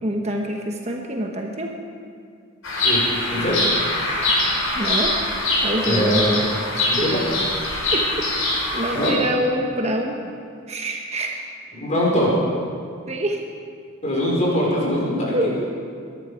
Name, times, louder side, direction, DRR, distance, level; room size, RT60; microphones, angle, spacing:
voice 1, 0.0-1.7 4.7-5.1 5.6-7.1 7.9-8.3 8.7-10.3 10.7-11.4 13.1-13.4 15.3-15.9, right 1 dB, 30° right, 1 dB, 1.1 m, -26 dB
Bird vocalization bird call bird song, 2.6-9.1, left 2 dB, 85° left, 4.9 m, -23 dB
voice 2, 5.8-6.3 6.9-7.2 8.9-9.1 11.8-12.3 14.0-15.4, equal, 35° left, -5 dB, 5.0 m, -22 dB
21.5 x 11.0 x 5.0 m, 2.2 s
head